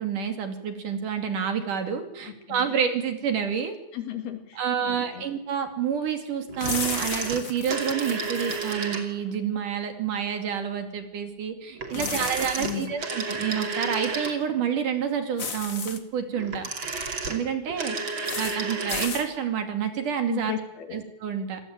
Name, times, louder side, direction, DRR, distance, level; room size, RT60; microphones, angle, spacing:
voice 1, 0.0-3.8 4.6-16.6 17.3-18.0 18.4-20.5 20.9-21.6, right 7 dB, 60° right, 6 dB, 3.9 m, -28 dB
voice 2, 2.3-2.7 3.9-5.2 11.9-12.9 20.3-21.0, left 10 dB, 85° left, 6 dB, 4.6 m, -36 dB
sound 1, 6.5-9.4 11.8-14.7 16.3-19.2 19.4-19.5, right 4 dB, 35° right, 3.1 m, -32 dB
sound 2, 6.6-8.8 11.9-12.9 15.4-16.0 18.2-18.6 18.9-19.3, left 5 dB, 50° left, 1.0 m, -34 dB
27.5 x 18.5 x 9.0 m, 0.86 s
omnidirectional pair, 4.3 m